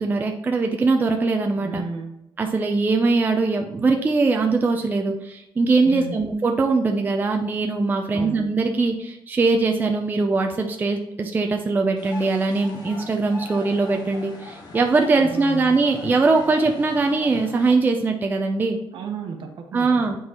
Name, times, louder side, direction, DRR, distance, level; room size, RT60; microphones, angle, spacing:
voice 1, 0.0-1.8 2.4-18.8 19.7-20.2, right 3 dB, 20° right, 3 dB, 0.4 m, -21 dB
voice 2, 1.6-2.1 5.8-6.2 8.1-8.4 15.1-15.7 18.9-20.1, right 5 dB, 60° right, 4 dB, 1.1 m, -33 dB
sound 1, 12.0-17.7, left 3 dB, 45° left, 1.3 m, -40 dB
8.7 x 3.9 x 2.9 m, 0.90 s
cardioid pair, 150°, 10 cm